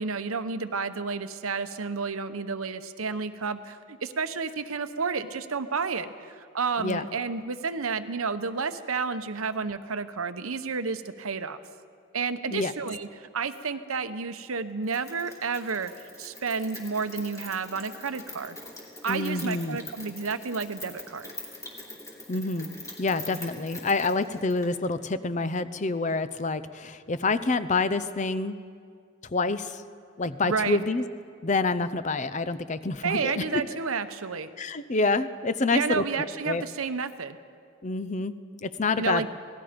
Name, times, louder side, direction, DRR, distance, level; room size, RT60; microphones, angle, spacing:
voice 1, 0.0-11.6 12.1-15.9 16.2-18.6 19.0-21.3 30.4-30.8 33.0-34.5 35.7-37.4 39.0-39.3, right 5 dB, 85° right, 10 dB, 0.9 m, -31 dB
Rain, 14.9-24.8, left 2 dB, 15° left, 2.8 m, -44 dB
voice 2, 19.1-19.8 22.3-22.7 23.0-28.6 29.3-29.8 30.2-31.0 31.4-33.6 34.6-36.0 36.5-36.6 37.8-38.3 38.6-39.2, left 3 dB, 35° left, 13 dB, 0.6 m, -27 dB
26.5 x 18.5 x 5.2 m, 2.3 s
head